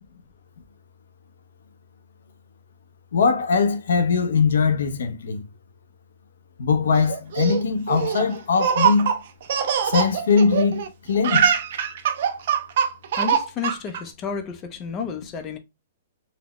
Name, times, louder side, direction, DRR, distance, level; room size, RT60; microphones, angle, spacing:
voice 1, 3.1-5.4 6.6-9.1 9.8-11.5, left 5 dB, 85° left, 0.7 m, -21 dB
Laughter, 7.1-10.9 11.1-14.0, right 8 dB, 55° right, 0.5 m, -23 dB
voice 2, 13.2-15.6, left 6 dB, 20° left, 0.5 m, -31 dB
4.1 x 2.2 x 2.9 m
hypercardioid pair, 165°, 0 cm